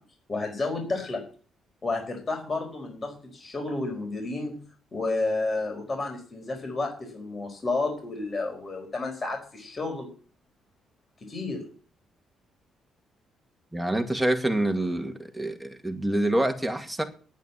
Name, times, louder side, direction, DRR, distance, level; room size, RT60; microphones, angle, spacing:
voice 1, 0.3-1.2 1.8-4.6 4.9-10.1 11.3-11.6, left 3 dB, 35° left, 2 dB, 4.8 m, -31 dB
voice 2, 13.7-17.0, right 1 dB, 5° right, 4 dB, 2.2 m, -26 dB
9.4 x 9.0 x 8.3 m, 0.40 s
cardioid pair, 90°, 0 cm